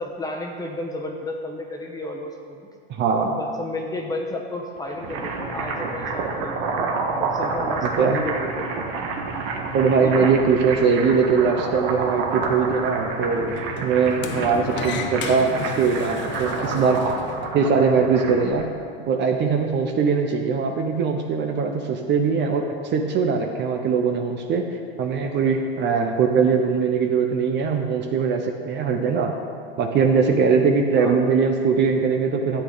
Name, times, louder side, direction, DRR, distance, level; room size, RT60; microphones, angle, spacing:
voice 1, 0.0-2.7 3.2-6.8 7.2-8.7 10.0-10.3 14.6-14.9 26.3-26.6 30.9-31.2, left 2 dB, 10° left, 0 dB, 1.2 m, -32 dB
voice 2, 2.9-3.3 7.8-8.2 9.7-13.6 13.8-17.0 17.5-18.7 19.0-24.7 25.0-29.4 29.8-32.6, right 5 dB, 35° right, 4 dB, 0.9 m, -21 dB
sound 1, 4.8-18.6, right 4 dB, 65° right, 1.6 m, -29 dB
Sliding door, 10.5-17.5, left 7 dB, 35° left, 0.7 m, -36 dB
13.0 x 8.3 x 4.0 m, 2.2 s
supercardioid pair, 125°, 31 cm